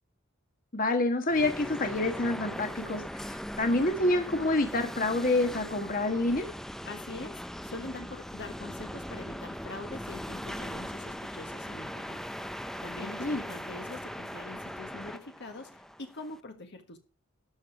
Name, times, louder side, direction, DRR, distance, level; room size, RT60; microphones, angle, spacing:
voice 1, 0.7-6.4 13.2-13.4, left 2 dB, 45° left, 1.5 m, -27 dB
sound 1, 1.3-16.4, equal, ahead, 0.5 m, -40 dB
voice 2, 6.8-12.2 12.8-17.0, left 2 dB, 60° left, 1.5 m, -44 dB
13.0 x 5.2 x 5.9 m
head